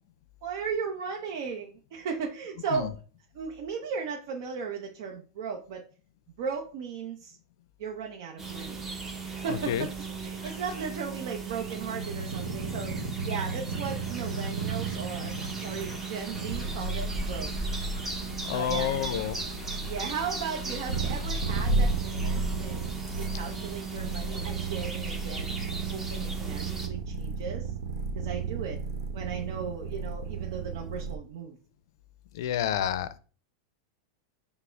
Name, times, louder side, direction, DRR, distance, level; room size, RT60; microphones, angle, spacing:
voice 1, 0.4-3.0 3.3-5.9 6.4-7.4 7.8-8.8 9.2-17.5 18.5-19.2 19.8-25.5 25.9-27.7 28.1-28.8 29.1-31.6, right 6 dB, 60° right, 1 dB, 0.6 m, -36 dB
sound 1, 8.4-26.9, right 4 dB, 15° right, 0.8 m, -37 dB
voice 2, 9.5-9.9 18.5-19.4 32.3-33.2, left 10 dB, 70° left, 14 dB, 0.4 m, -29 dB
sound 2, 11.6-31.2, right 3 dB, 80° right, 0.9 m, -34 dB
sound 3, 13.7-21.3, right 1 dB, 10° left, 1.3 m, -50 dB
6.0 x 2.0 x 3.3 m, 0.39 s
supercardioid pair, 145°, 2 cm